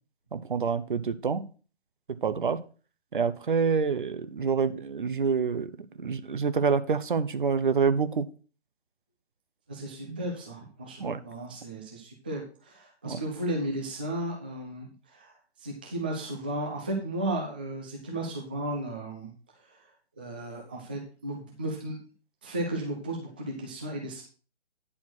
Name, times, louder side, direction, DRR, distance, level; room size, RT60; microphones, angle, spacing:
voice 1, 0.3-1.4 2.2-2.6 3.1-5.7 6.0-8.3 10.1-10.2 11.0-11.2 13.0-13.2, right 5 dB, 50° right, 13 dB, 0.8 m, -27 dB
voice 2, 9.7-15.3 15.6-19.3 19.6-19.8 20.2-22.0 22.4-24.2, right 1 dB, 10° right, -1 dB, 0.5 m, -34 dB
9.8 x 4.3 x 6.0 m, 0.38 s
figure-of-eight pair, 140°, 33 cm